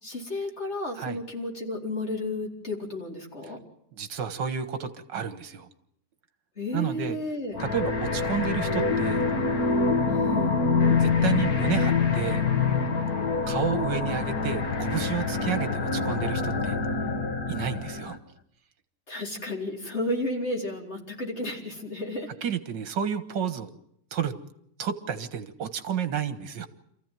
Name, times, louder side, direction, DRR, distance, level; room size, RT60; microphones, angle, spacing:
voice 1, 0.0-3.6 6.6-7.6 10.1-10.5 19.1-22.3, left 1 dB, 35° left, -1 dB, 4.5 m, -32 dB
voice 2, 3.9-5.7 6.7-7.2 7.6-9.2 10.9-12.4 13.5-16.8 17.5-18.2 22.4-23.7 24.1-24.4 24.8-26.7, right 8 dB, 70° right, 10 dB, 2.0 m, -31 dB
sound 1, 7.5-18.2, left 4 dB, 55° left, 1.9 m, -25 dB
27.5 x 15.0 x 9.1 m, 0.73 s
omnidirectional pair, 2.0 m